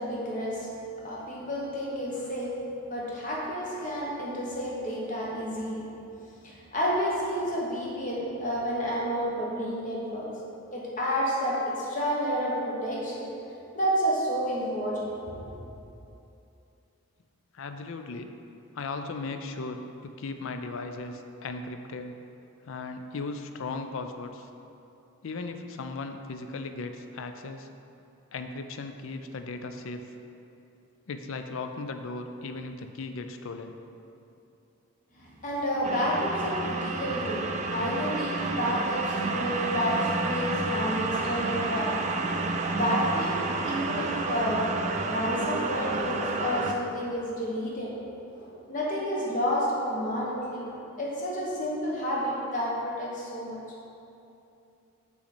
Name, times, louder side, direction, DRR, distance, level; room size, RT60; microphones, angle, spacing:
voice 1, 0.0-5.8 6.4-10.4 10.7-13.3 13.7-15.6 35.1-48.0 48.3-53.6, equal, 35° left, -4 dB, 1.2 m, -30 dB
voice 2, 17.5-18.3 18.7-22.1 22.7-24.5 25.2-27.7 28.3-30.0 31.1-33.8, left 3 dB, 60° left, 7 dB, 0.4 m, -37 dB
sound 1, 35.8-46.7, right 3 dB, 30° right, 0.4 m, -30 dB
6.4 x 5.6 x 4.3 m, 2.8 s
head